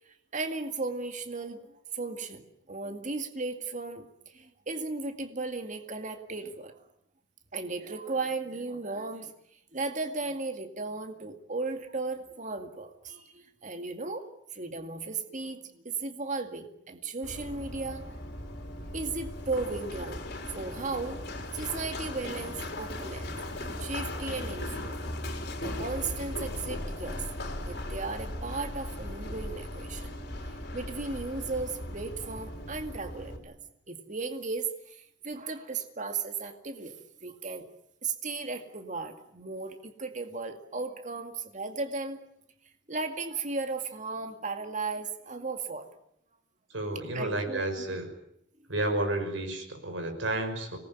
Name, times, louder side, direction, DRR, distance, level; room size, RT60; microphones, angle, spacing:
voice 1, 0.0-6.8 7.5-14.3 14.5-18.2 18.9-23.3 23.6-25.0 25.6-27.2 27.7-33.6 33.9-37.7 38.0-42.2 42.9-45.9 47.1-47.9, right 3 dB, 40° right, 6 dB, 2.1 m, -36 dB
Run, 17.2-33.4, left 1 dB, 55° left, 4.6 m, -38 dB
voice 2, 46.7-48.1 48.7-50.8, right 2 dB, 80° right, 6 dB, 5.8 m, -31 dB
25.5 x 19.5 x 9.4 m, 0.74 s
head